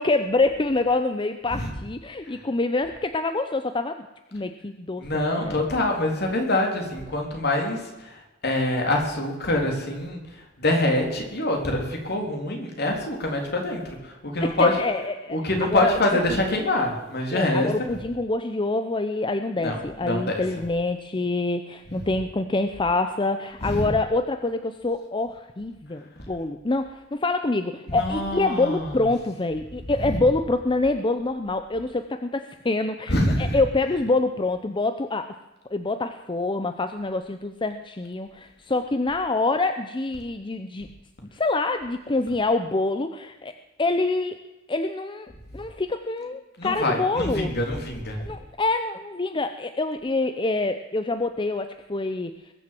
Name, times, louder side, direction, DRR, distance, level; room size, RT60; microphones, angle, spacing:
voice 1, 0.0-4.1 4.3-5.7 14.4-16.0 17.3-35.3 35.7-40.9 41.3-43.5 43.8-44.4 44.7-47.5 48.2-52.3, left 2 dB, 25° left, 8 dB, 0.6 m, -26 dB
voice 2, 5.0-8.1 8.4-10.2 10.6-14.7 15.3-17.7 19.6-20.4 23.6-23.8 27.9-28.9 33.1-33.6 46.6-48.2, left 1 dB, 55° left, 1 dB, 3.6 m, -25 dB
21.5 x 7.6 x 7.6 m, 1.1 s
head